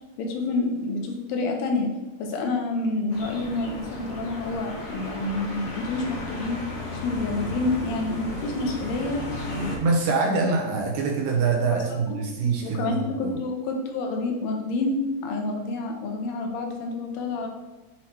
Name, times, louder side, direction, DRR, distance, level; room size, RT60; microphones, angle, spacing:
voice 1, 0.2-1.9 2.2-6.6 6.9-9.8 12.1-12.2 12.6-17.5, left 2 dB, 80° left, 2 dB, 2.7 m, -28 dB
sound 1, 3.1-9.8, left 1 dB, 55° left, 1.7 m, -35 dB
voice 2, 9.8-13.4, right 4 dB, 75° right, 0 dB, 2.1 m, -25 dB
7.3 x 3.1 x 4.3 m, 1.2 s
omnidirectional pair, 4.7 m